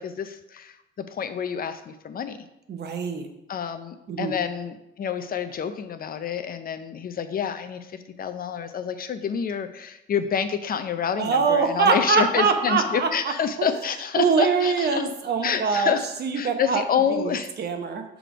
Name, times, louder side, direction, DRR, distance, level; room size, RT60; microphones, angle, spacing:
voice 1, 0.0-2.4 3.5-15.1 15.4-16.1 16.4-17.5, left 7 dB, 45° left, 10 dB, 0.5 m, -28 dB
voice 2, 2.7-3.3 4.1-4.3 11.2-13.3 13.6-13.7 14.2-16.8 17.1-18.0, right 5 dB, 55° right, 6 dB, 0.9 m, -23 dB
6.1 x 3.3 x 5.0 m, 0.89 s
cardioid pair, 90°, 20 cm